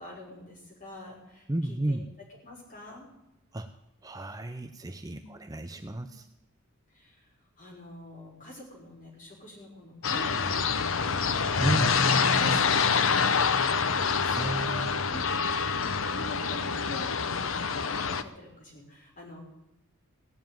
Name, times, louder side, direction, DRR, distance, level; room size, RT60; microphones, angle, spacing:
voice 1, 0.0-2.0 2.4-3.1 5.1-5.4 5.9-6.2 6.9-7.3 7.6-15.3 15.6-17.5 17.8-19.4, left 1 dB, 35° left, -2 dB, 5.6 m, -46 dB
voice 2, 1.5-2.0 3.5-3.7 4.0-6.3 11.6-11.9 14.4-15.0, right 1 dB, 15° right, 7 dB, 0.6 m, -32 dB
sound 1, 10.0-18.2, left 5 dB, 70° left, 0.8 m, -26 dB
18.0 x 7.4 x 9.1 m, 0.93 s
head